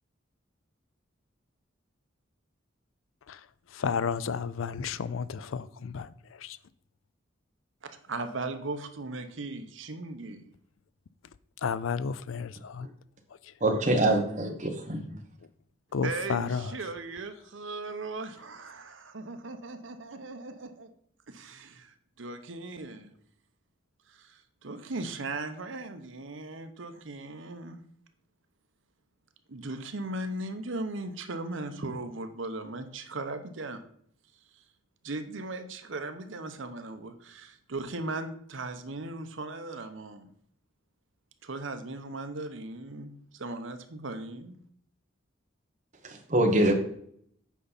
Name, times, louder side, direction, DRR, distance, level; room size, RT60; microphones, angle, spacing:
voice 1, 3.3-6.6 11.6-12.9 13.4-13.5 15.9-16.8, left 6 dB, 90° left, 0.4 m, -32 dB
voice 2, 7.8-10.5 16.0-20.9 21.3-23.1 24.1-27.8 29.5-33.8 34.5-34.6 35.0-40.3 41.4-44.6, right 2 dB, 80° right, 0.9 m, -38 dB
voice 3, 13.6-14.5 14.9-15.0 46.0-46.7, right 1 dB, 35° right, 1.3 m, -24 dB
8.4 x 5.6 x 4.1 m
head